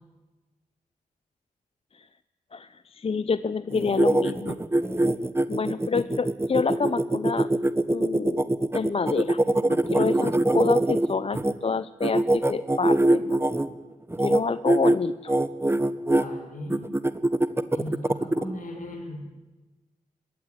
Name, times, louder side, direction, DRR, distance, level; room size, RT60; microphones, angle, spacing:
voice 1, 2.5-4.6 5.5-7.5 7.9-9.4 9.7-13.4 14.2-15.3, left 5 dB, 45° left, 16 dB, 0.7 m, -28 dB
sound 1, 3.7-11.5 12.0-13.7 14.1-14.4 14.7-15.0 15.3-16.2 16.7-18.4, right 1 dB, 15° right, 1.4 m, -22 dB
voice 2, 16.0-16.8 17.7-19.2, left 1 dB, 65° left, 4 dB, 6.3 m, -37 dB
21.0 x 17.0 x 9.7 m, 1.2 s
cardioid pair, 55°, 14 cm